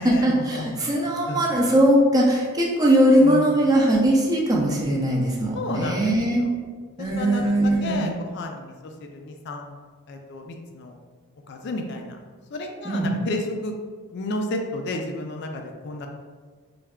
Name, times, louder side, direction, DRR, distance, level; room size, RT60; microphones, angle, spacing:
voice 1, 0.0-6.4 7.0-8.1 12.8-13.1, right 1 dB, 15° right, -2 dB, 0.4 m, -20 dB
voice 2, 0.5-0.8 1.3-1.5 3.2-3.6 5.5-6.5 7.0-7.5 7.8-9.8 10.1-10.9 11.5-12.2 12.5-13.8 14.1-16.1, left 2 dB, 50° left, 3 dB, 0.3 m, -32 dB
3.2 x 2.3 x 3.5 m, 1.5 s
head